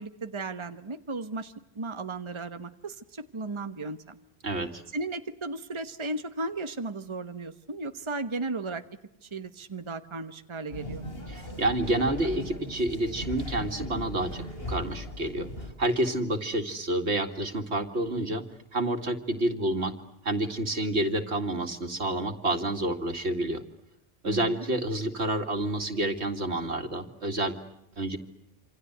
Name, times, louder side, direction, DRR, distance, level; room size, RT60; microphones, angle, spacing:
voice 1, 0.0-4.2 4.9-8.8 9.2-11.0 24.2-24.6, right 3 dB, 25° right, 9 dB, 1.2 m, -35 dB
voice 2, 4.4-4.8 11.3-15.5 15.8-18.4 18.7-19.9 20.2-23.6 24.2-27.6 28.0-28.2, right 1 dB, 80° right, 7 dB, 2.6 m, -29 dB
sound 1, 10.7-15.7, left 1 dB, 65° left, 5.7 m, -38 dB
27.5 x 27.0 x 8.1 m, 0.80 s
omnidirectional pair, 1.1 m